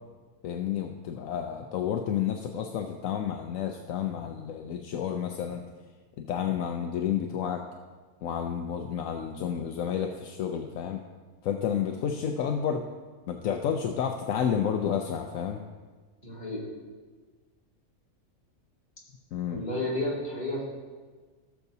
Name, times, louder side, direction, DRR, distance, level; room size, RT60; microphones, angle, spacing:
voice 1, 0.4-5.7 6.2-7.7 8.2-11.0 11.4-12.8 13.3-15.6 19.3-19.7, left 8 dB, 75° left, 4 dB, 1.0 m, -30 dB
voice 2, 16.2-16.7 19.5-20.6, left 1 dB, 30° left, -7 dB, 2.7 m, -31 dB
16.5 x 6.8 x 2.7 m, 1.4 s
omnidirectional pair, 1.4 m